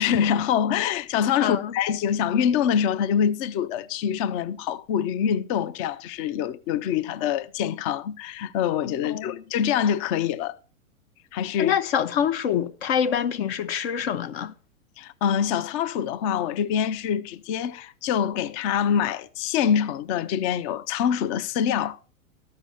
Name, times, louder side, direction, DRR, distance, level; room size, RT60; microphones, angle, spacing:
voice 1, 0.0-10.6 11.3-11.7 15.0-22.0, left 8 dB, 25° left, 0.4 m, -25 dB
voice 2, 1.4-1.7 9.0-9.4 11.6-14.5, left 8 dB, 45° left, 0.8 m, -25 dB
13.5 x 6.1 x 5.5 m
figure-of-eight pair, 100°, 41 cm